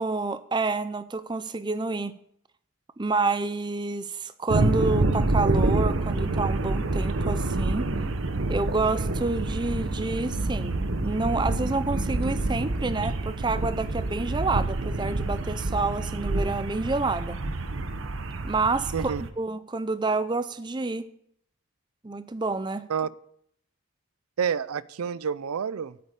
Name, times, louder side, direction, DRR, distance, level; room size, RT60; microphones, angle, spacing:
voice 1, 0.0-2.1 3.0-7.9 8.5-17.4 18.4-21.1 22.0-22.9, right 3 dB, 20° right, 12 dB, 0.5 m, -28 dB
sound 1, 4.5-19.3, right 2 dB, 65° right, 1.0 m, -27 dB
voice 2, 24.4-25.9, right 7 dB, 90° right, 18 dB, 0.5 m, -28 dB
8.6 x 8.4 x 8.2 m, 0.70 s
head